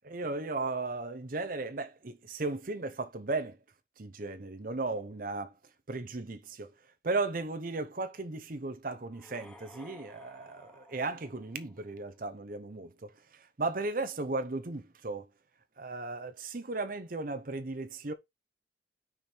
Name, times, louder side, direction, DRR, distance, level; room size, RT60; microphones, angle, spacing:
voice 1, 0.0-3.6 4.0-5.5 5.9-6.7 7.0-15.3 15.8-18.1, right 3 dB, 50° right, 0.8 m, -36 dB
sound 1, 9.1-12.1, equal, 5° left, 1.0 m, -54 dB
5.7 x 4.5 x 5.0 m
head